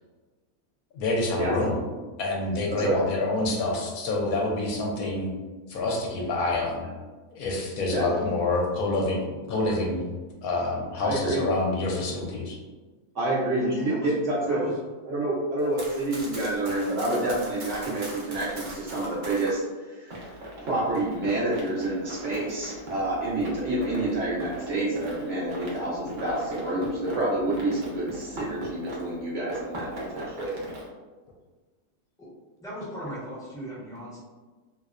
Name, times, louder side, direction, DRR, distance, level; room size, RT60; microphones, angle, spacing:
voice 1, 0.9-1.8 2.2-5.3 5.7-6.8 7.3-10.0 10.4-12.6, left 2 dB, 75° left, -1 dB, 1.0 m, -27 dB
voice 2, 11.0-11.4 13.1-14.6 15.1-19.6 19.9-20.2 20.6-30.6, right 2 dB, 65° right, -6 dB, 0.8 m, -28 dB
voice 3, 13.6-14.1 14.4-14.8 32.2-32.3 32.6-34.2, equal, 5° left, -9 dB, 0.5 m, -37 dB
Run, 15.6-19.6 20.1-29.2 29.5-30.9, right 1 dB, 85° right, 0.4 m, -39 dB
2.7 x 2.0 x 2.4 m, 1.3 s
omnidirectional pair, 1.6 m